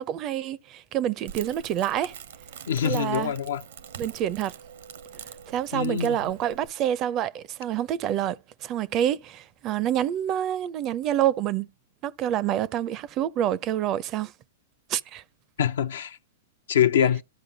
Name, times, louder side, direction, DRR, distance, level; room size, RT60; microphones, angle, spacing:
voice 1, 0.0-2.1 2.8-3.3 4.0-4.5 5.5-11.7 12.0-14.3 14.9-15.2, right 11 dB, 35° right, 0.4 m, -27 dB
Crackle, 1.3-6.7, right 8 dB, 75° right, 0.7 m, -44 dB
voice 2, 2.7-3.6 5.7-6.3 15.6-16.2 16.7-17.2, left 9 dB, 80° left, 0.5 m, -24 dB
13.0 x 4.9 x 2.8 m
hypercardioid pair, 120°, 0 cm